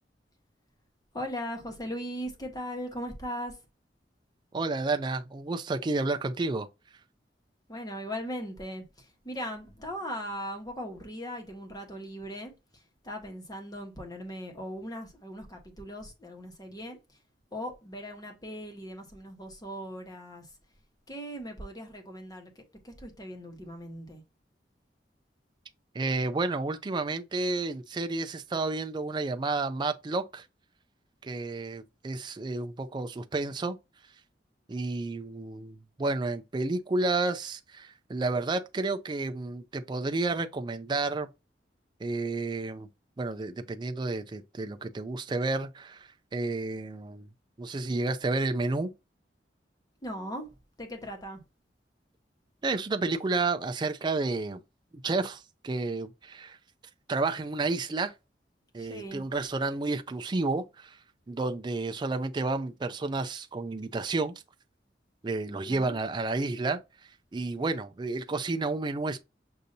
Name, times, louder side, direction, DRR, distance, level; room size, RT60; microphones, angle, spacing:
voice 1, 1.1-3.6 7.7-17.2 17.5-20.5 21.1-24.2 50.0-50.5 50.8-51.4 58.8-59.2 65.6-66.0, equal, 25° left, 1.2 m, -39 dB
voice 2, 4.5-6.7 25.9-30.5 31.2-33.8 34.7-41.3 42.0-42.9 43.2-47.3 47.6-48.9 52.6-54.6 54.9-56.6 57.1-58.1 58.7-61.0 61.3-64.3 65.2-66.8 67.3-69.2, right 3 dB, 25° right, 0.4 m, -31 dB
6.5 x 2.6 x 2.7 m
head